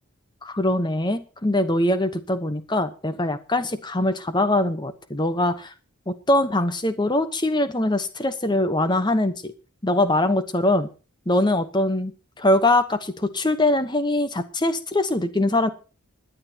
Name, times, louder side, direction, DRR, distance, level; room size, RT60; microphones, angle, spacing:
voice 1, 0.4-5.7 6.1-9.5 9.8-10.9 11.3-12.1 12.4-15.7, left 1 dB, 20° left, 11 dB, 1.0 m, -22 dB
25.5 x 10.0 x 2.9 m, 0.35 s
head